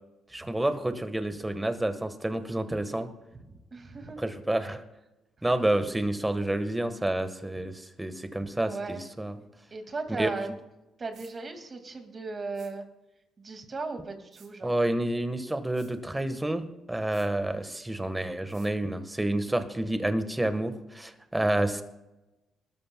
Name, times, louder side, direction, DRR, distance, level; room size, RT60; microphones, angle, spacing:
voice 1, 0.3-3.1 4.2-4.8 5.4-9.4 10.1-10.3 14.6-21.8, right 1 dB, 10° right, 9 dB, 1.4 m, -29 dB
voice 2, 3.5-4.2 8.6-9.1 9.7-10.5 11.0-12.9 13.4-14.7, right 3 dB, 35° right, 5 dB, 2.1 m, -36 dB
sound 1, 11.1-11.3 12.5-12.7 14.3-14.5 15.7-15.9 17.1-17.3 18.5-18.7, right 6 dB, 70° right, 4.5 m, -56 dB
19.5 x 13.0 x 2.3 m, 1.0 s
cardioid pair, 90°, 0 cm